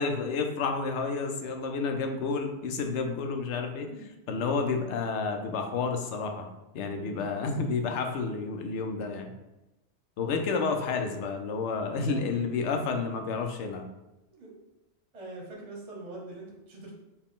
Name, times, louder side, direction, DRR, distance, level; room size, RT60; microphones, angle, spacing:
voice 1, 0.0-3.9 4.3-6.5 6.7-9.3 10.2-13.9, left 4 dB, 80° left, 4 dB, 0.9 m, -30 dB
voice 2, 6.9-7.2 12.0-12.3 14.3-14.6 15.1-16.9, right 2 dB, 35° right, -2 dB, 0.8 m, -43 dB
4.3 x 2.3 x 3.6 m, 0.96 s
omnidirectional pair, 1.2 m